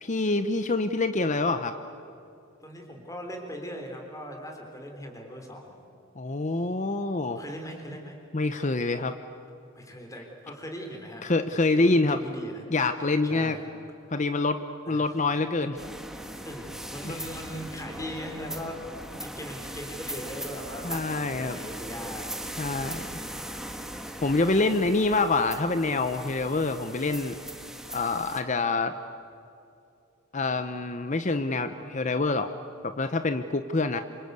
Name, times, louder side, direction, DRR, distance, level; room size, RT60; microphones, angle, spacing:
voice 1, 0.0-1.7 6.2-7.4 8.3-9.2 11.2-12.2 12.7-13.6 14.1-15.8 17.0-17.1 20.8-21.6 22.6-23.3 24.2-27.4 27.9-28.9 30.3-32.5 32.8-34.0, left 3 dB, 35° left, 10 dB, 0.8 m, -26 dB
voice 2, 2.6-5.7 7.3-8.2 9.7-11.3 11.7-12.6 13.2-13.6 14.9-15.0 16.4-18.8 19.2-22.3, equal, 15° left, 2 dB, 4.0 m, -39 dB
sound 1, 15.8-28.4, right 1 dB, ahead, 1.5 m, -39 dB
27.5 x 26.0 x 8.3 m, 2.6 s
head